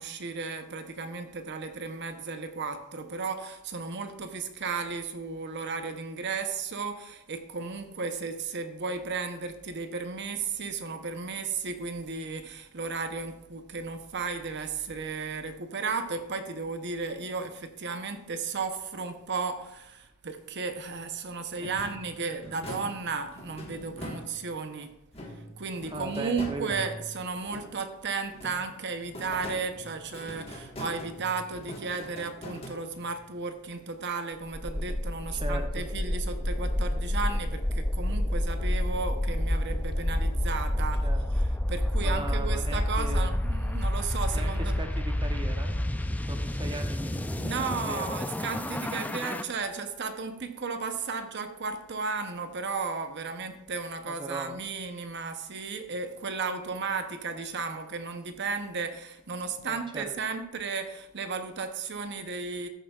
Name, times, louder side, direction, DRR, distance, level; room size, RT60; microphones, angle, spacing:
voice 1, 0.0-24.9 25.6-41.1 41.3-44.8 47.1-62.7, right 4 dB, 55° right, 7 dB, 0.8 m, -34 dB
sound 1, 21.6-24.7 25.1-27.9 28.3-33.2, equal, 30° left, 1.5 m, -43 dB
voice 2, 25.9-26.8 35.3-35.9 41.0-41.2 42.0-43.3 44.3-47.3 47.9-48.2 49.0-49.1 54.1-54.6 59.6-60.0, right 2 dB, 20° right, 5 dB, 0.7 m, -38 dB
sound 2, 34.5-49.4, left 1 dB, 5° left, 0.3 m, -29 dB
14.0 x 7.3 x 2.4 m, 0.88 s
head